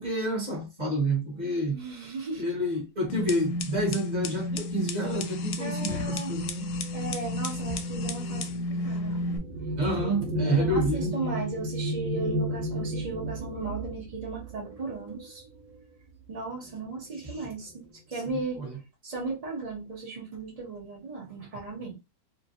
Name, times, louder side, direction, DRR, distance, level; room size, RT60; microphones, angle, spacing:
voice 1, 0.0-1.8 2.4-6.7 9.8-11.1 18.6-18.7, right 1 dB, 30° right, 1.0 m, -29 dB
voice 2, 1.7-2.5 5.6-6.3 6.9-9.3 9.9-10.1 10.4-15.4 16.3-18.6 19.0-22.0, right 3 dB, 70° right, 0.3 m, -36 dB
sound 1, 3.1-9.4, left 2 dB, 75° left, 1.1 m, -32 dB
sound 2, 6.9-15.8 16.7-16.8 17.2-17.8, right 1 dB, 85° right, 1.4 m, -33 dB
3.1 x 2.6 x 2.6 m
omnidirectional pair, 2.1 m